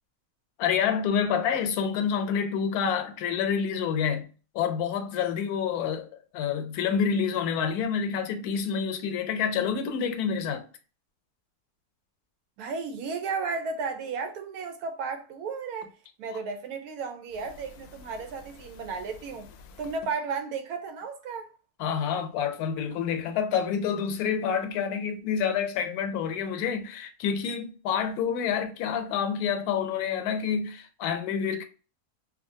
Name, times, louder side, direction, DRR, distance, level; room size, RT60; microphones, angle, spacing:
voice 1, 0.6-4.3 4.5-6.1 6.3-10.6 21.8-31.6, left 7 dB, 80° left, 1.1 m, -28 dB
voice 2, 12.6-19.5 19.8-21.5, right 5 dB, 75° right, 1.1 m, -34 dB
2.7 x 2.5 x 2.6 m
omnidirectional pair, 1.6 m